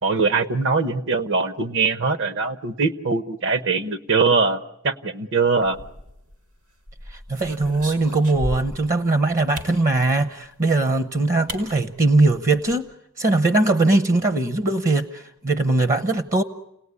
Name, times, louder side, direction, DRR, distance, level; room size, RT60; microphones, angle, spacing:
voice 1, 0.0-4.6 4.8-5.8, right 4 dB, 60° right, 11 dB, 1.2 m, -22 dB
sound 1, 5.6-6.3 6.9-8.9 9.5-9.8 10.9-11.0 11.5-11.6 12.0-12.1 12.3-12.7, equal, 85° right, 4.5 m, -34 dB
voice 2, 7.1-12.8 13.2-16.4, right 2 dB, 40° right, 10 dB, 0.9 m, -20 dB
29.5 x 18.5 x 9.8 m, 0.87 s
head